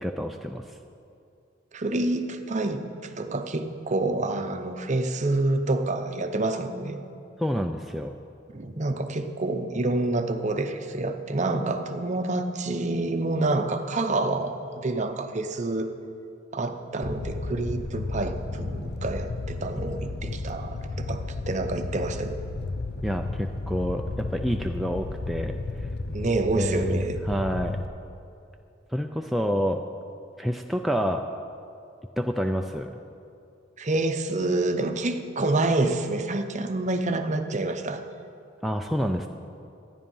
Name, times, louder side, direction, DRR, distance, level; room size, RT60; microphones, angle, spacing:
voice 1, 0.0-0.7 7.4-8.1 23.0-25.9 26.5-27.8 28.9-29.8 30.4-31.2 32.2-33.0 38.6-39.3, equal, ahead, 3 dB, 0.3 m, -28 dB
voice 2, 1.7-7.0 8.5-15.9 16.5-22.4 26.1-27.2 33.8-38.0, right 2 dB, 40° right, 7 dB, 0.7 m, -28 dB
Fire, 17.0-27.9, left 3 dB, 55° left, 0.6 m, -33 dB
13.0 x 9.9 x 5.5 m, 2.5 s
head